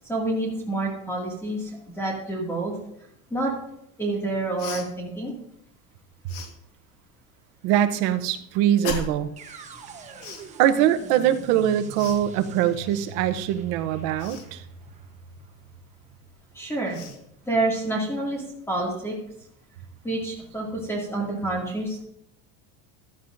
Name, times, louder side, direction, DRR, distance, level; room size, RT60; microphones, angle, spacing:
voice 1, 0.1-2.7 3.3-3.5 4.0-5.3 16.5-17.1 17.5-19.1 20.0-22.0, right 2 dB, 5° left, -2 dB, 2.2 m, -28 dB
Cough, 4.6-4.9 6.3-6.5 8.8-9.3 10.2-10.5 12.0-12.2 14.2-14.5 16.3-16.4 16.9-17.2, left 5 dB, 55° left, 1.6 m, -35 dB
voice 2, 7.6-9.3 10.6-14.6, right 11 dB, 50° right, 9 dB, 0.8 m, -22 dB
sound 1, 9.4-17.3, right 3 dB, 15° right, 0.9 m, -44 dB
15.0 x 11.5 x 2.6 m, 0.75 s
cardioid pair, 175°, 41 cm